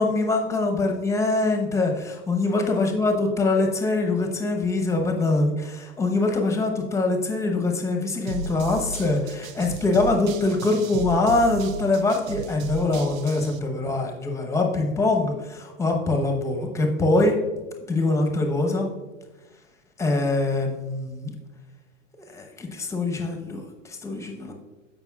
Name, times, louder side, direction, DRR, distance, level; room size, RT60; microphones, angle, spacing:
voice 1, 0.0-17.4 17.9-18.9 20.0-21.3 22.3-24.5, left 2 dB, 5° left, 3 dB, 0.9 m, -23 dB
sound 1, 8.3-13.6, right 5 dB, 85° right, 0.7 m, -35 dB
14.5 x 5.3 x 2.4 m, 1.2 s
hypercardioid pair, 125°, 39 cm